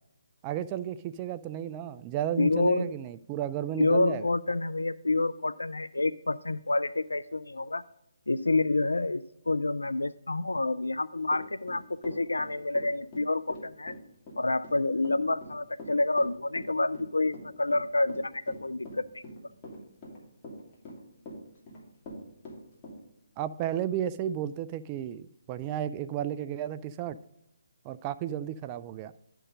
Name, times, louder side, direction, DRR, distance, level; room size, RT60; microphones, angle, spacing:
voice 1, 0.4-4.3 23.4-27.2 27.8-29.1, right 11 dB, 25° right, 12 dB, 0.3 m, -33 dB
voice 2, 2.4-2.9 3.8-7.8 8.3-13.9 14.4-19.2, left 2 dB, 85° left, 13 dB, 0.4 m, -28 dB
Run / Walk footsteps, 11.3-23.0, left 1 dB, 25° left, 2.6 m, -43 dB
11.0 x 4.6 x 5.0 m, 0.81 s
figure-of-eight pair, 150°, 0 cm